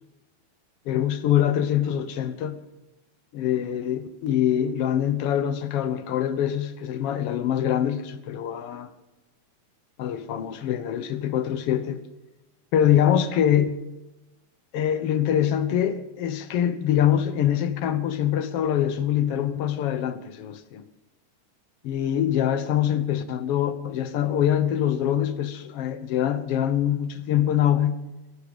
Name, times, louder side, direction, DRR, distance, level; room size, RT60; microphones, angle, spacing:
voice 1, 0.9-2.6 3.3-8.9 10.0-12.0 12.7-13.9 14.7-20.8 21.8-28.0, left 10 dB, 65° left, 1.7 m, -24 dB
21.5 x 11.5 x 5.3 m
omnidirectional pair, 3.3 m